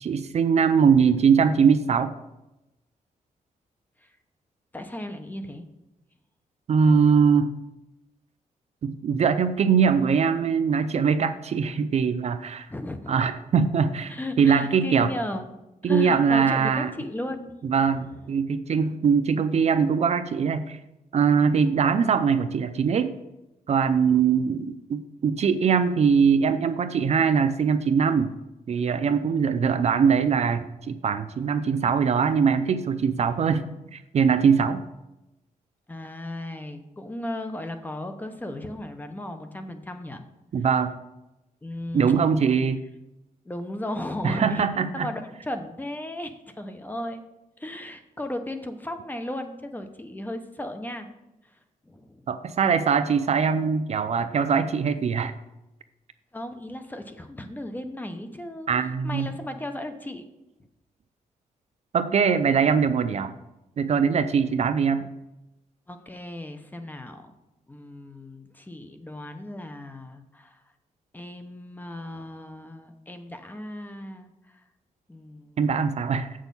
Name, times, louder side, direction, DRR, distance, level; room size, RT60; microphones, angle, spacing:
voice 1, 0.0-2.1 6.7-7.5 8.8-12.7 13.1-14.1 14.4-15.1 15.8-16.9 17.6-20.8 21.1-23.1 23.7-28.3 28.7-34.8 40.5-40.9 41.9-42.8 44.2-45.1 52.3-55.3 58.7-59.3 61.9-63.3 63.8-65.1 75.6-76.3, right 6 dB, 50° right, 11 dB, 0.5 m, -22 dB
voice 2, 4.7-5.7 12.7-13.1 14.1-15.4 15.8-17.5 17.8-18.3 35.9-40.2 41.6-42.6 43.4-47.2 47.6-51.1 51.4-52.2 56.3-60.2 65.9-67.3 67.7-70.6 71.1-74.6 75.1-75.9, left 1 dB, 10° left, 7 dB, 0.8 m, -36 dB
7.9 x 6.3 x 5.4 m, 0.95 s
cardioid pair, 120°, 14 cm